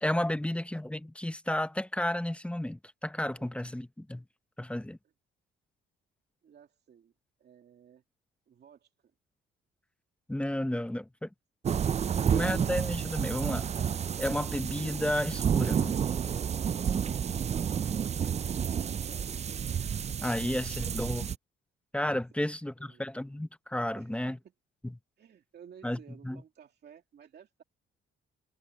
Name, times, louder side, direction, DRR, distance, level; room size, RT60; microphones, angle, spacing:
voice 1, 0.0-4.2 4.6-5.0 10.3-11.3 12.3-13.7 14.2-16.0 20.2-21.3 21.9-24.4 24.8-24.9 25.8-26.0 26.2-26.4, left 1 dB, 5° left, 1.1 m, -32 dB
voice 2, 6.4-7.1 7.4-8.0 8.5-8.9 18.8-19.3 22.8-23.0 23.9-24.5 25.2-27.6, right 8 dB, 55° right, 2.5 m, -55 dB
sound 1, 11.6-21.3, right 8 dB, 35° right, 0.4 m, -30 dB
cardioid pair, 90°, 20 cm